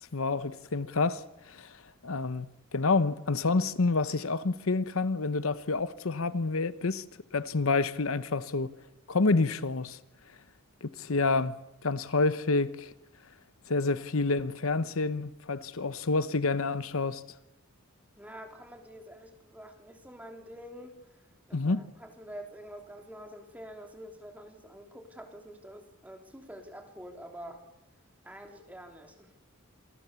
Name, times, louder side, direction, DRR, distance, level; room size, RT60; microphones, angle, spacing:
voice 1, 0.1-1.8 2.0-7.0 7.3-8.7 9.1-10.0 10.8-12.9 13.7-17.2 21.5-21.8, left 3 dB, 75° left, 0.9 m, -28 dB
voice 2, 18.2-20.9 21.5-27.6 28.2-29.3, equal, 5° right, 3.3 m, -47 dB
27.0 x 19.5 x 7.0 m
head